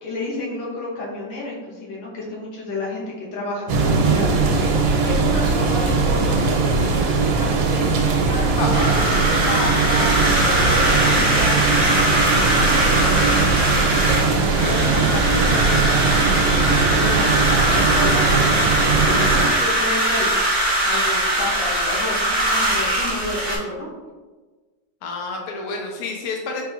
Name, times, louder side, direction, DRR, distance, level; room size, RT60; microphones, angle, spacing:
voice 1, 0.0-3.0 3.3-8.0 8.3-9.0 9.5-10.1 10.4-20.5 20.8-23.9, left 2 dB, 90° left, -4 dB, 1.8 m, -31 dB
sound 1, 3.7-19.5, right 4 dB, 90° right, 1.4 m, -20 dB
voice 2, 5.6-6.5 8.6-8.9 25.0-26.6, left 3 dB, 65° left, 1 dB, 1.1 m, -30 dB
sound 2, 8.7-23.6, right 1 dB, 25° right, 0.9 m, -21 dB
4.4 x 3.5 x 2.4 m, 1.3 s
omnidirectional pair, 2.0 m